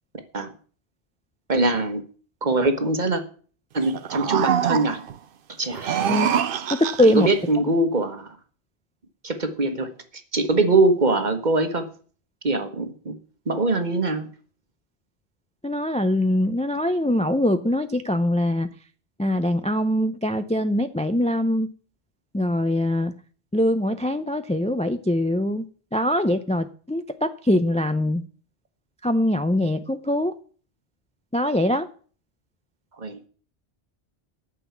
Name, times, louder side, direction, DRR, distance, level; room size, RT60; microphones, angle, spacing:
voice 1, 1.5-2.0 2.4-3.2 3.7-5.0 5.6-6.0 7.0-8.4 9.2-9.9 10.3-11.9 12.4-13.1 13.5-14.3 33.0-33.2, right 2 dB, 45° right, 7 dB, 1.4 m, -22 dB
sound 1, 3.8-5.2 5.7-7.3, right 8 dB, 60° right, 0.8 m, -25 dB
voice 2, 6.7-7.3 15.6-18.7 19.2-21.7 22.3-23.1 23.5-25.7 25.9-28.2 29.0-30.3 31.3-31.9, left 1 dB, 10° left, 9 dB, 0.3 m, -22 dB
9.2 x 6.3 x 8.4 m, 0.43 s
omnidirectional pair, 1.1 m